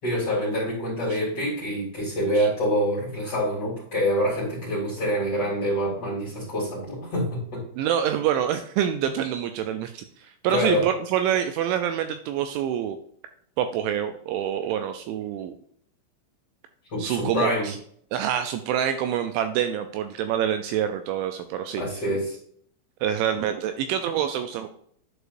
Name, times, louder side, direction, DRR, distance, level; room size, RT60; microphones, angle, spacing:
voice 1, 0.0-7.6 10.5-10.9 16.9-17.7 21.8-22.4, equal, 35° left, -7 dB, 3.6 m, -26 dB
voice 2, 7.8-13.0 13.6-15.6 17.0-17.8 18.1-21.8 23.0-24.7, right 9 dB, 85° right, 8 dB, 2.7 m, -26 dB
11.0 x 4.9 x 2.6 m, 0.64 s
omnidirectional pair, 5.8 m